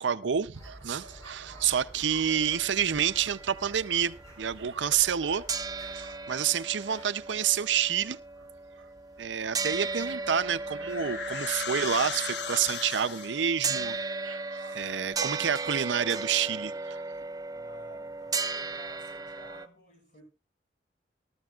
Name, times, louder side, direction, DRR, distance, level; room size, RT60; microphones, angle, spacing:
voice 1, 0.0-5.4 5.8-8.2 9.2-14.0 14.2-17.0, right 8 dB, 90° right, 0.6 m, -29 dB
sound 1, 0.5-14.3, equal, 20° left, 3.5 m, -53 dB
sound 2, 2.3-5.2 5.5-19.7, right 4 dB, 20° right, 0.6 m, -36 dB
sound 3, 10.1-13.5, left 5 dB, 70° left, 1.1 m, -36 dB
voice 2, 17.5-20.2, equal, 45° left, 6.0 m, -54 dB
18.5 x 13.5 x 2.4 m
head